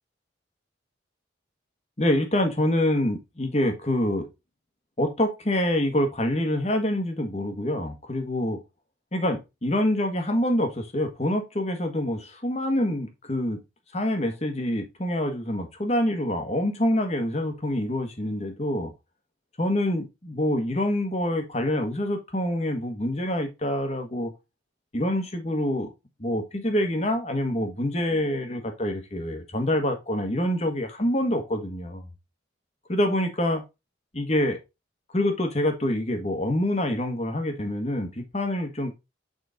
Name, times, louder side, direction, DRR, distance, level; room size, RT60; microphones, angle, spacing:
voice 1, 2.0-4.3 5.0-8.6 9.1-13.6 13.9-18.9 19.6-24.3 24.9-25.9 26.2-32.0 32.9-33.6 34.1-34.6 35.1-38.9, left 1 dB, 35° left, 1.5 m, -26 dB
6.7 x 4.4 x 3.9 m
head